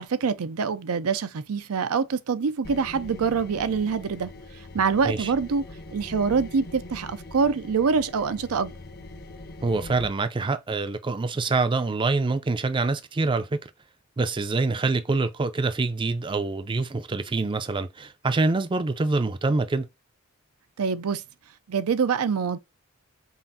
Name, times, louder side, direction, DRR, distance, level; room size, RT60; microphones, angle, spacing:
voice 1, 0.0-4.3 4.7-8.7 20.8-21.2 21.7-22.6, right 5 dB, 90° right, 0.5 m, -25 dB
sound 1, 2.6-10.1, left 2 dB, 45° left, 0.7 m, -42 dB
voice 2, 9.6-13.6 14.2-19.9, right 3 dB, 25° right, 0.4 m, -25 dB
5.6 x 2.5 x 2.5 m
head